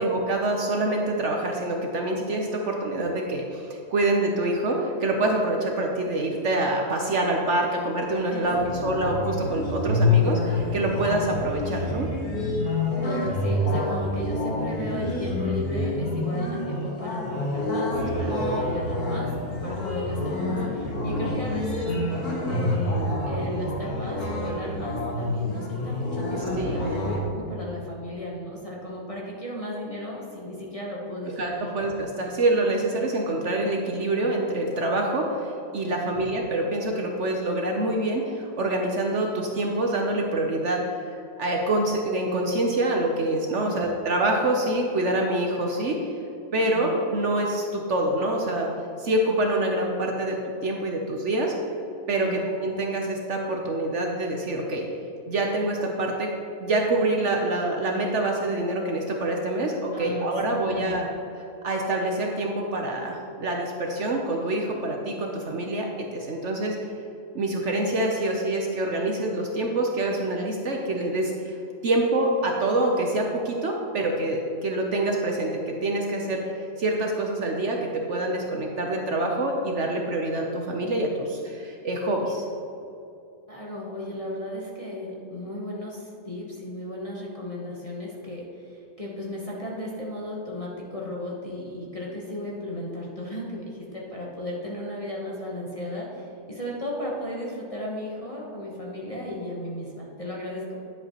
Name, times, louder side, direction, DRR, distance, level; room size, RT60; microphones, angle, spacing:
voice 1, 0.0-12.1 18.3-18.4 19.8-19.9 26.6-26.8 31.4-46.2 46.5-48.7 49.0-51.5 52.1-54.9 55.3-56.3 56.6-61.0 61.6-66.8 67.3-71.6 71.8-82.4, right 2 dB, 55° right, 1 dB, 0.9 m, -26 dB
sound 1, 8.4-27.2, left 2 dB, 70° left, 2.0 m, -27 dB
voice 2, 13.0-19.4 19.6-31.7 35.9-36.2 43.6-43.9 46.6-46.9 52.2-52.5 59.9-61.1 83.5-100.7, left 1 dB, 25° left, -4 dB, 1.0 m, -35 dB
10.0 x 7.9 x 2.9 m, 2.7 s
omnidirectional pair, 1.6 m